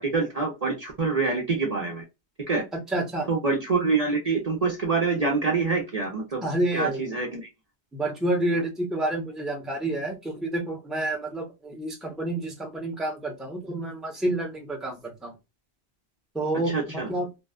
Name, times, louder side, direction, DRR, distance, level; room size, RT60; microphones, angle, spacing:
voice 1, 0.0-2.0 2.5-2.6 3.3-6.4 6.7-7.5 16.7-17.1, right 4 dB, 40° right, 0 dB, 0.7 m, -26 dB
voice 2, 2.7-3.3 6.4-7.1 7.9-15.3 16.3-17.3, right 1 dB, ahead, 0 dB, 0.8 m, -29 dB
2.7 x 2.2 x 2.3 m, 0.24 s
omnidirectional pair, 1.1 m